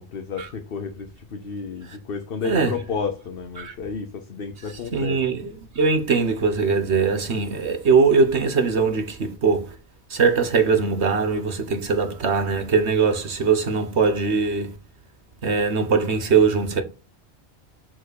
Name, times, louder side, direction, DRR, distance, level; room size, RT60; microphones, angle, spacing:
voice 1, 0.0-5.2, left 5 dB, 60° left, 1.0 m, -32 dB
voice 2, 4.9-9.7 10.1-14.7 15.4-16.8, right 5 dB, 70° right, 1.6 m, -21 dB
5.9 x 4.5 x 6.4 m
omnidirectional pair, 1.2 m